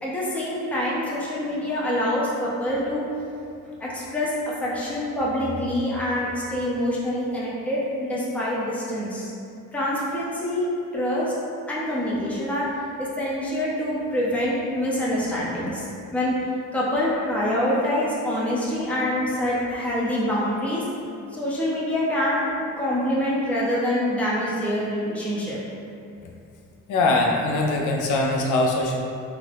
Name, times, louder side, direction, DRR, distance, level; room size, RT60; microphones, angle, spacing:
voice 1, 0.0-3.1 3.8-4.3 4.6-9.3 9.7-11.3 11.7-12.7 13.0-16.3 16.7-20.8 21.3-25.6, left 1 dB, 5° left, -7 dB, 0.6 m, -25 dB
voice 2, 26.9-29.0, left 2 dB, 85° left, 0 dB, 0.5 m, -22 dB
2.7 x 2.5 x 3.3 m, 2.6 s
cardioid pair, 90°, 30 cm